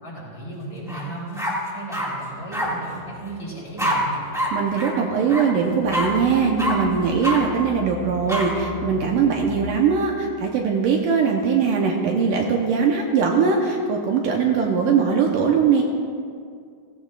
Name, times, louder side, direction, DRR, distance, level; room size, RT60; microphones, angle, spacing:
voice 1, 0.0-1.5 1.7-4.2, right 2 dB, 20° left, -5 dB, 3.2 m, -35 dB
sound 1, 0.9-1.0 1.4-2.1 2.5-2.7 3.8-3.9 4.3-4.5 4.7-4.9 5.3-5.4 5.9-6.1 6.6-6.7 7.2-7.4 8.3-8.4, equal, ahead, 0.6 m, -25 dB
sound 2, 2.3-9.6, left 2 dB, 50° right, 1.5 m, -39 dB
voice 2, 4.5-15.8, right 6 dB, 70° right, 0 dB, 2.3 m, -21 dB
18.0 x 15.5 x 2.5 m, 2.2 s
omnidirectional pair, 4.3 m